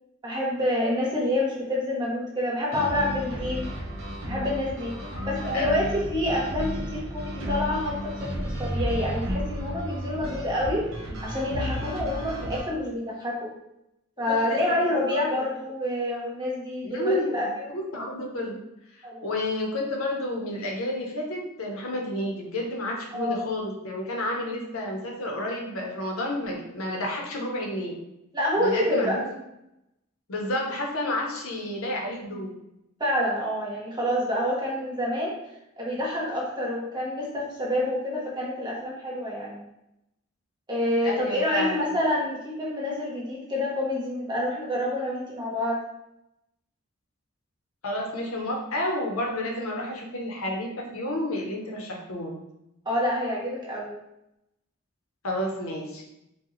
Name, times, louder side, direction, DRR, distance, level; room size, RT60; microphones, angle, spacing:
voice 1, 0.2-3.7 4.3-4.9 5.3-10.9 11.2-13.5 14.2-17.7 19.0-19.3 23.1-23.4 28.3-29.2 33.0-35.3 35.8-39.7 40.7-45.8 52.8-53.9, left 1 dB, 20° right, -4 dB, 1.0 m, -27 dB
sound 1, 2.7-12.6, equal, 70° right, 1.1 m, -33 dB
voice 2, 5.1-5.7 14.4-15.3 16.8-17.4 17.7-18.6 19.2-28.0 28.6-29.2 30.3-32.5 41.0-41.9 47.8-52.3 55.2-56.0, left 1 dB, 80° left, 0 dB, 0.9 m, -30 dB
4.7 x 2.3 x 3.1 m, 0.86 s
head